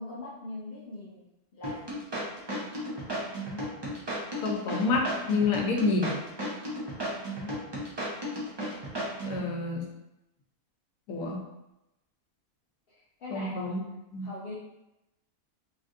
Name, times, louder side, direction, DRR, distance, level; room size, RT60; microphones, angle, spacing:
voice 1, 0.0-2.0 7.4-7.7 12.9-13.7 14.2-14.5, left 2 dB, 65° left, -6 dB, 0.6 m, -42 dB
sound 1, 1.6-9.4, equal, 40° right, 0.3 m, -34 dB
voice 2, 4.4-6.2 9.2-9.8 11.1-11.4 13.3-13.8 14.1-14.3, left 3 dB, 80° left, 1 dB, 1.0 m, -28 dB
3.3 x 2.5 x 2.5 m, 0.91 s
omnidirectional pair, 1.5 m